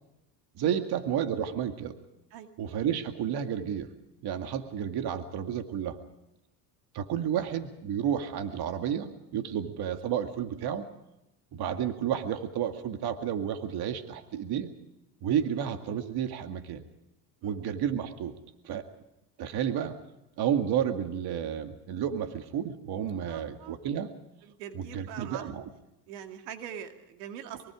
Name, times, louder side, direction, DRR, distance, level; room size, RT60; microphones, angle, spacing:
voice 1, 0.6-1.9 2.6-3.9 4.2-6.0 6.9-10.9 11.5-14.7 15.2-16.8 17.4-18.3 18.6-18.8 19.4-20.0 20.4-24.1 24.8-25.6, right 9 dB, 50° right, 7 dB, 2.2 m, -31 dB
voice 2, 23.3-23.8 24.4-25.5 26.1-27.7, right 9 dB, 80° right, 6 dB, 2.5 m, -43 dB
24.0 x 23.5 x 5.0 m, 0.90 s
supercardioid pair, 95°, 48 cm